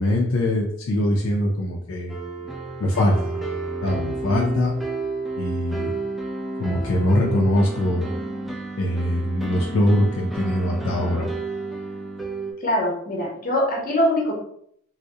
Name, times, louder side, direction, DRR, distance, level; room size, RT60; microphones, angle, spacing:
voice 1, 0.0-2.2 2.8-3.4 3.8-4.7 5.3-5.9 6.6-8.1 8.8-11.3, left 1 dB, 70° left, -1 dB, 0.4 m, -22 dB
sound 1, 2.1-12.5, right 3 dB, ahead, 0.3 m, -31 dB
voice 2, 12.6-14.4, left 1 dB, 45° left, -1 dB, 0.7 m, -23 dB
2.6 x 2.0 x 2.3 m, 0.67 s
head